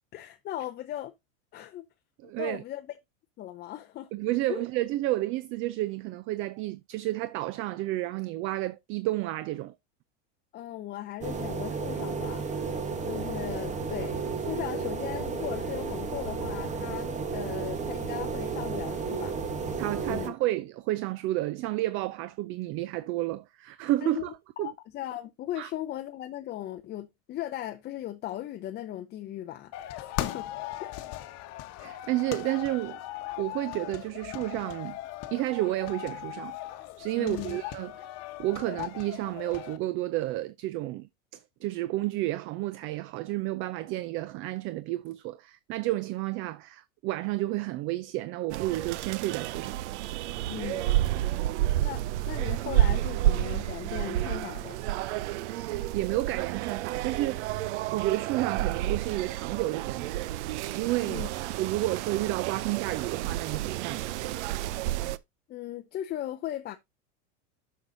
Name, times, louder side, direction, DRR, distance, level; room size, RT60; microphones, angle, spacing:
voice 1, 0.1-1.1 1.5-1.9 2.4-2.9 3.4-4.1 4.5-4.6 10.5-12.6 13.1-19.3 20.1-20.3 24.0-30.5 30.8-31.0 37.2-37.6 50.5-50.9 51.8-54.8 61.1-61.3 65.5-66.8, left 13 dB, 30° left, 0.6 m, -37 dB
voice 2, 2.2-2.6 4.1-9.7 19.8-24.7 25.6-25.7 31.8-33.0 33.4-35.0 35.3-36.6 37.0-37.9 38.4-49.8 55.6-60.3 60.7-61.2 61.5-64.4, right 17 dB, 40° right, 0.4 m, -31 dB
sound 1, 11.2-20.3, right 5 dB, 20° right, 1.1 m, -33 dB
sound 2, 29.7-39.8, left 14 dB, 50° left, 1.1 m, -39 dB
sound 3, 48.5-65.2, right 13 dB, 80° right, 0.6 m, -30 dB
9.6 x 6.5 x 2.6 m
supercardioid pair, 135°, 34 cm